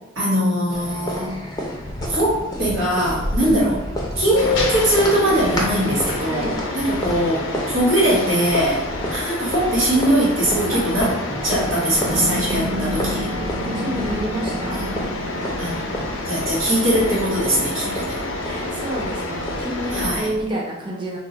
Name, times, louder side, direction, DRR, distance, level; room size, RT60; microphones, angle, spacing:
voice 1, 0.1-1.4 2.0-3.7 4.2-8.8 9.1-11.1 11.4-13.3 14.7-15.1 15.6-15.8 16.3-18.2 19.9-20.3, equal, 90° right, -6 dB, 1.3 m, -21 dB
sound 1, 0.7-20.4, equal, 20° left, 0.5 m, -31 dB
sound 2, 4.4-20.1, left 2 dB, 70° left, 0.5 m, -29 dB
sound 3, 12.0-18.8, equal, 70° right, 0.5 m, -32 dB
voice 2, 13.6-14.8 17.8-21.2, right 1 dB, 25° right, -4 dB, 0.6 m, -29 dB
2.3 x 2.2 x 3.8 m, 0.94 s
head